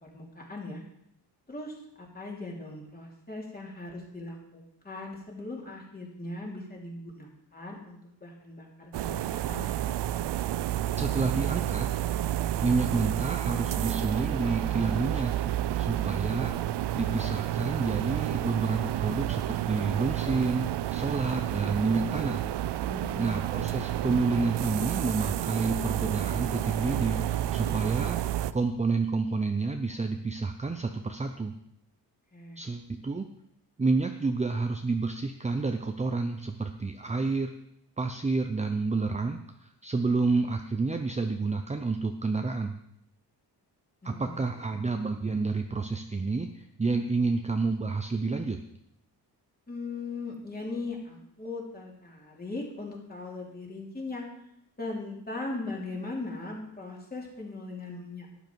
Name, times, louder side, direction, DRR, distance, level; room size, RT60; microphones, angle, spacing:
voice 1, 0.0-0.8 1.5-9.7 22.8-23.4 32.3-32.6 44.0-44.8 49.7-54.3 54.8-58.4, left 2 dB, 20° left, -2 dB, 3.0 m, -39 dB
sound 1, 8.9-28.5, right 12 dB, 85° right, 0.6 m, -30 dB
voice 2, 11.0-12.1 12.6-16.5 16.9-22.4 23.2-28.2 28.5-31.5 32.6-33.3 33.8-37.5 38.0-42.8 44.0-48.6, right 3 dB, 15° right, 5 dB, 0.6 m, -29 dB
12.5 x 10.0 x 4.6 m, 0.76 s
wide cardioid pair, 130°, 40 cm